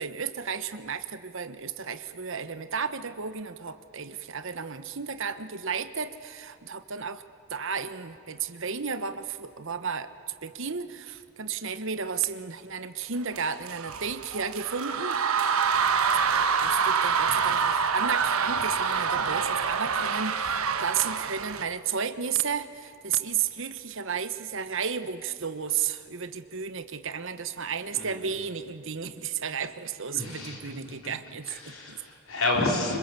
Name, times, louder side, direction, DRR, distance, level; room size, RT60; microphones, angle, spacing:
voice 1, 0.0-7.2 7.5-15.2 16.3-32.0, right 6 dB, 60° right, 11 dB, 1.1 m, -33 dB
sound 1, 13.3-21.6, right 6 dB, 75° right, 1.3 m, -26 dB
voice 2, 30.1-30.6 30.9-31.0 31.5-33.0, left 2 dB, 65° left, 0 dB, 4.9 m, -29 dB
26.0 x 25.5 x 8.3 m, 2.6 s
head